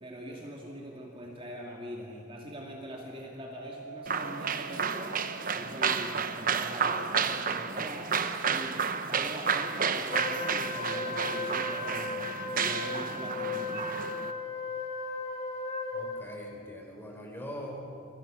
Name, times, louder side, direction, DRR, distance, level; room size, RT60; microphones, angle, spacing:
voice 1, 0.0-5.2 5.5-8.1 8.5-12.2 12.5-13.9, equal, 25° right, -1 dB, 2.5 m, -42 dB
sound 1, 3.4-14.3, right 5 dB, 80° left, 4.0 m, -51 dB
sound 2, 4.1-14.3, right 6 dB, 40° right, 1.0 m, -31 dB
Wind instrument woodwind instrument, 10.1-16.4, left 3 dB, 30° left, 2.3 m, -36 dB
voice 2, 15.9-17.9, equal, 10° left, 0 dB, 4.8 m, -42 dB
29.5 x 24.5 x 6.4 m, 2.7 s
head